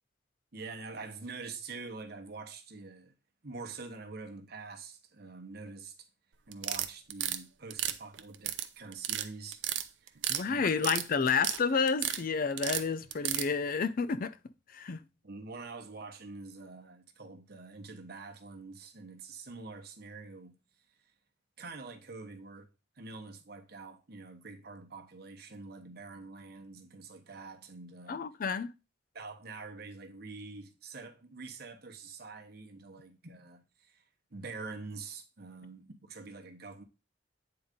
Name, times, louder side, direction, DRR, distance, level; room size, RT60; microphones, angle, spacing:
voice 1, 0.5-3.1 3.4-6.0 6.5-9.6 10.0-10.2 10.4-10.7 15.2-20.6 21.6-22.7 22.9-28.2 29.1-34.0 34.3-36.8, right 3 dB, 60° right, 1.1 m, -45 dB
sound 1, 6.5-7.4 7.7-8.6 8.9-9.2 9.5-10.4 10.7-11.6 11.9-12.2 12.6-13.5, right 12 dB, 80° right, 0.6 m, -32 dB
voice 2, 10.3-14.4 14.7-15.0 28.1-28.7, left 5 dB, 50° left, 0.5 m, -30 dB
8.7 x 3.9 x 3.6 m
head